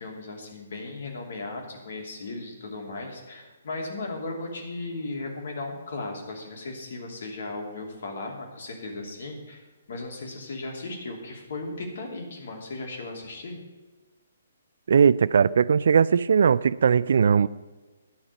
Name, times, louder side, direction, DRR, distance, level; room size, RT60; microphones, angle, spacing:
voice 1, 0.0-13.6, left 2 dB, 55° left, 2.8 m, -36 dB
voice 2, 14.9-17.5, right 6 dB, 55° right, 0.3 m, -19 dB
11.0 x 6.1 x 9.0 m
figure-of-eight pair, 130°, 0 cm